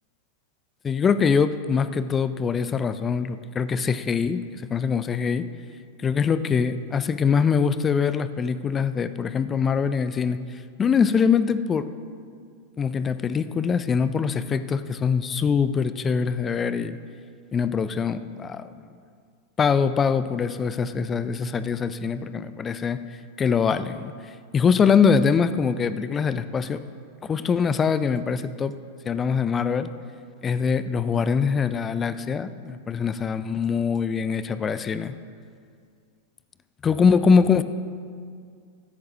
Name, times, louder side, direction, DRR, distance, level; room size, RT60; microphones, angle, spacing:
voice 1, 0.8-5.5 6.0-10.4 10.8-11.9 12.8-17.0 17.5-18.8 19.6-23.0 23.4-26.8 27.2-28.7 29.1-29.9 30.4-35.1 36.8-37.6, left 6 dB, 20° left, 13 dB, 0.5 m, -23 dB
16.0 x 13.0 x 3.0 m, 2.2 s
figure-of-eight pair, 95°, 0 cm